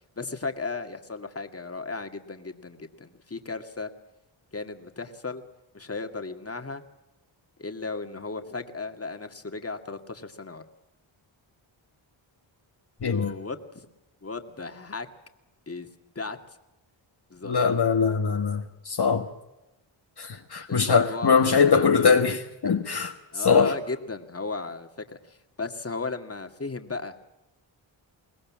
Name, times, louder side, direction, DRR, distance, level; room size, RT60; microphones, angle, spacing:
voice 1, 0.2-3.9 4.5-5.4 5.7-6.8 7.6-10.6 13.0-13.9 14.2-15.1 15.7-15.9 16.2-16.4 17.3-17.5 20.7-21.9 23.3-24.9 25.2-27.2, left 3 dB, 30° left, 2.1 m, -35 dB
voice 2, 13.0-13.3 17.4-19.3 20.2-23.7, left 5 dB, 55° left, 1.5 m, -22 dB
23.0 x 18.5 x 7.5 m
cardioid pair, 60°, 48 cm